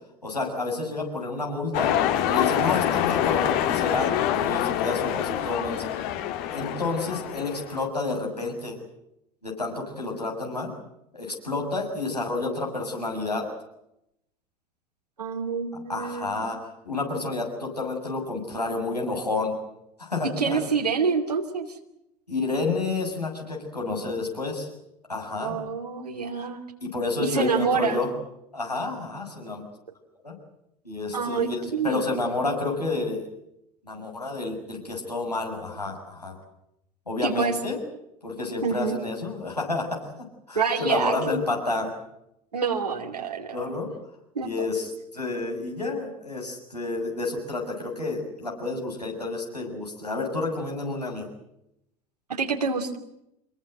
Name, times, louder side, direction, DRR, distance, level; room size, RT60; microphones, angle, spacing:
voice 1, 0.2-1.9 2.2-5.9 6.5-8.8 9.4-10.7 11.1-13.4 15.9-16.6 16.9-19.6 20.0-20.6 22.3-24.7 25.1-25.6 26.8-28.1 28.5-29.6 30.2-30.3 30.8-33.3 33.8-36.4 37.1-37.8 38.2-40.0 40.5-41.9 43.5-43.9 44.4-51.3, left 3 dB, 90° left, 0 dB, 7.2 m, -30 dB
sound 1, 1.7-7.8, left 11 dB, 55° left, 2.0 m, -26 dB
voice 2, 15.2-16.4 20.4-21.7 25.4-26.6 27.2-28.0 31.1-32.0 37.2-37.6 38.6-39.0 40.5-41.2 42.5-43.5 44.3-44.5 52.3-53.0, right 5 dB, 80° right, 2 dB, 2.8 m, -27 dB
27.0 x 22.0 x 7.9 m, 0.82 s
figure-of-eight pair, 70°, 20 cm